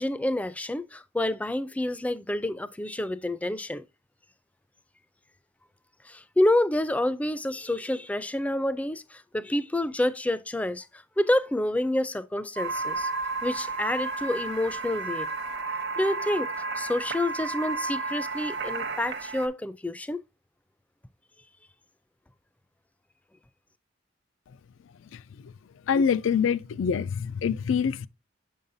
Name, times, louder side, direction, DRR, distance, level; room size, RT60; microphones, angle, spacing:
voice 1, 0.0-3.8 6.1-10.9 11.2-13.1 13.4-15.3 16.0-20.2, left 1 dB, 10° left, 0.3 m, -28 dB
sound 1, 12.6-19.5, right 3 dB, 65° right, 0.8 m, -32 dB
voice 2, 25.1-25.5 25.9-28.1, left 6 dB, 90° left, 0.3 m, -26 dB
7.0 x 5.5 x 2.6 m
head